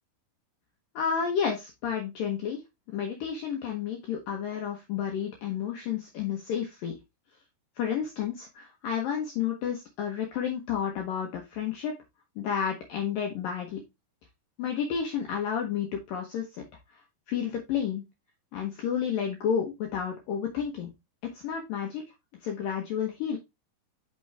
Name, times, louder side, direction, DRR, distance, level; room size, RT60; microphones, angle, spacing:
voice 1, 1.0-2.6 2.9-7.0 7.8-11.9 12.4-13.8 14.6-16.6 17.3-18.0 18.5-20.9 21.3-22.0 22.4-23.4, left 8 dB, 65° left, 1 dB, 2.5 m, -31 dB
6.0 x 6.0 x 3.3 m, 0.22 s
omnidirectional pair, 4.8 m